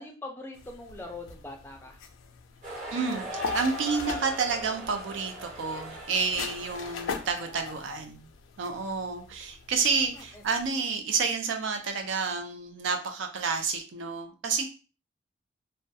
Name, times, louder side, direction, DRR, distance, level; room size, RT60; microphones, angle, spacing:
voice 1, 0.0-2.0 10.1-10.4, left 2 dB, 10° left, 2 dB, 0.3 m, -42 dB
sound 1, 0.5-10.7, left 5 dB, 90° left, 0.3 m, -42 dB
sound 2, 2.6-7.8, left 1 dB, 40° right, 0.7 m, -39 dB
voice 2, 2.9-8.3 8.6-14.6, right 5 dB, 80° right, 5 dB, 0.4 m, -30 dB
2.2 x 2.1 x 2.6 m, 0.35 s
head